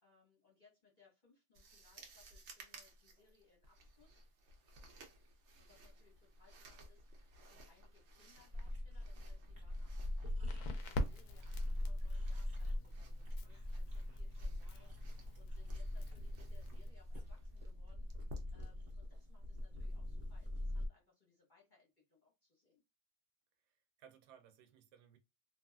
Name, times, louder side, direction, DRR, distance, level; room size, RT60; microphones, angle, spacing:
voice 1, 0.0-4.2 5.3-10.0 10.4-18.1 18.5-22.8, left 5 dB, 35° left, 0.9 m, -70 dB
sound 1, 1.5-19.9, equal, 60° right, 0.7 m, -58 dB
sound 2, 8.5-20.9, left 1 dB, 25° right, 0.8 m, -42 dB
Crackle, 10.2-16.9, left 1 dB, 70° left, 1.0 m, -46 dB
voice 2, 23.6-25.2, right 8 dB, 80° right, 1.1 m, -62 dB
2.9 x 2.5 x 2.2 m
omnidirectional pair, 1.8 m